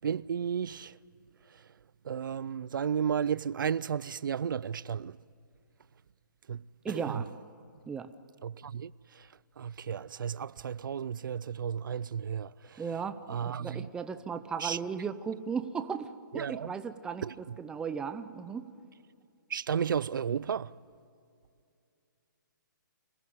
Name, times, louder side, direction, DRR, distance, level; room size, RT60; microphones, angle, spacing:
voice 1, 0.0-0.9 2.1-5.2 6.5-6.6 6.9-7.2 8.4-8.9 9.6-12.8 13.3-13.9 14.6-14.8 16.3-16.7 17.2-17.3 19.5-20.7, right 7 dB, 75° right, 0.4 m, -33 dB
voice 2, 6.8-7.3 7.9-8.1 12.8-16.1 16.3-18.6, right 6 dB, 5° right, 0.5 m, -36 dB
25.0 x 15.5 x 9.4 m
hypercardioid pair, 155°, 11 cm